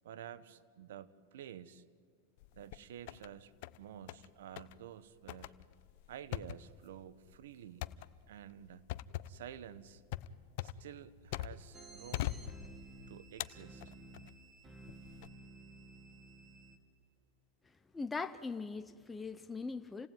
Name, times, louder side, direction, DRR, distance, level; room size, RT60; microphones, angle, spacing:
voice 1, 0.0-1.8 2.5-5.5 6.1-7.9 8.3-8.9 9.3-10.0 10.6-12.4 13.1-13.9, right 10 dB, 80° right, 16 dB, 1.1 m, -51 dB
sound 1, 2.4-3.3 3.6-4.3 4.6-4.8 5.3-11.8 12.1-13.0 13.4-14.3 14.9-15.3, left 15 dB, 60° left, 0.8 m, -42 dB
sound 2, 11.7-16.8, right 2 dB, 15° right, 2.4 m, -54 dB
voice 2, 17.9-20.1, left 4 dB, 10° left, 10 dB, 0.7 m, -40 dB
28.5 x 18.0 x 9.3 m, 2.2 s
supercardioid pair, 135°, 0 cm